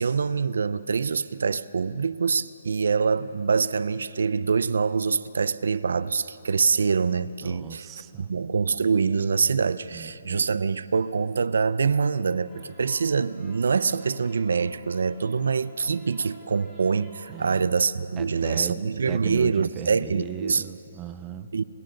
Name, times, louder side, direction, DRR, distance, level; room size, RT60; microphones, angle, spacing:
voice 1, 0.0-7.9 8.2-20.6 21.5-21.6, right 5 dB, 70° right, 0.6 m, -25 dB
voice 2, 7.4-8.4 9.9-10.4 17.3-17.7 18.2-21.5, right 9 dB, 15° right, 0.5 m, -38 dB
sound 1, 12.3-17.8, right 1 dB, 5° left, 3.4 m, -51 dB
29.0 x 26.0 x 3.9 m
hypercardioid pair, 170°, 0 cm